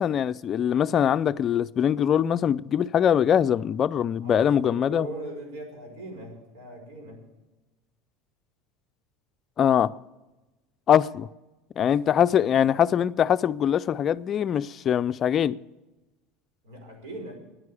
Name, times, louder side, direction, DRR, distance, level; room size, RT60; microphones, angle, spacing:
voice 1, 0.0-5.1 9.6-9.9 10.9-11.3 11.8-15.6, left 9 dB, 40° left, 0.4 m, -22 dB
voice 2, 4.2-7.2 11.8-12.4 16.6-17.4, right 1 dB, 80° right, 5.2 m, -40 dB
10.5 x 9.6 x 9.9 m
supercardioid pair, 105°, 0 cm